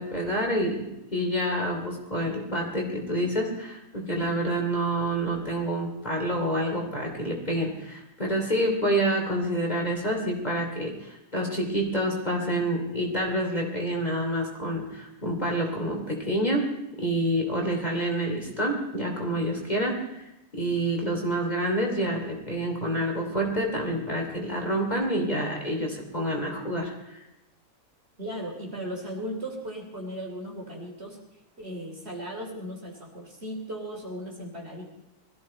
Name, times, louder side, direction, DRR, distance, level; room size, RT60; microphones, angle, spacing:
voice 1, 0.0-16.7 17.0-20.2 20.5-27.2, right 1 dB, 30° left, 0 dB, 3.1 m, -28 dB
voice 2, 28.2-31.2 31.6-34.8, equal, 45° right, 0 dB, 3.6 m, -36 dB
21.5 x 14.5 x 4.3 m, 0.92 s
omnidirectional pair, 1.5 m